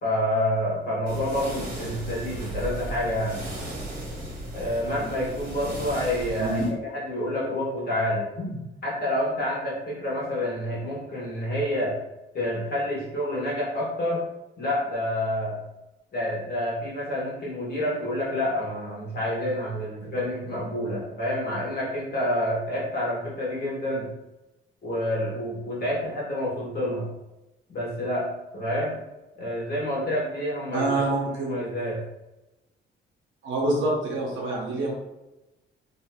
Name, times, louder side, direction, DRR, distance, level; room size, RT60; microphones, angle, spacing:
voice 1, 0.0-3.4 4.5-6.6 6.9-11.9 12.3-14.2 14.6-15.6 16.1-24.1 24.8-27.1 27.7-28.3 28.5-29.0 29.4-32.0, left 1 dB, 50° left, -6 dB, 1.3 m, -28 dB
sound 1, 1.1-6.7, right 1 dB, 45° right, 1.3 m, -35 dB
voice 2, 30.7-31.6 33.4-34.9, right 2 dB, 75° right, -3 dB, 0.8 m, -26 dB
2.7 x 2.7 x 2.2 m, 0.99 s
cardioid pair, 90°, 20 cm